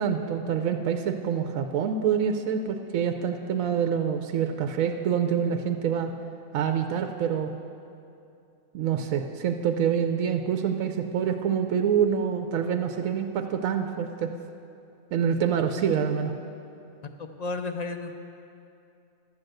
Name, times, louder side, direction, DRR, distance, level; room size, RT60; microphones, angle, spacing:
voice 1, 0.0-6.1 6.5-7.5 8.7-14.3 15.1-16.3, right 7 dB, 80° right, 6 dB, 1.1 m, -26 dB
voice 2, 17.4-18.1, left 3 dB, 55° left, 6 dB, 0.4 m, -32 dB
12.0 x 7.7 x 7.9 m, 2.6 s
omnidirectional pair, 1.4 m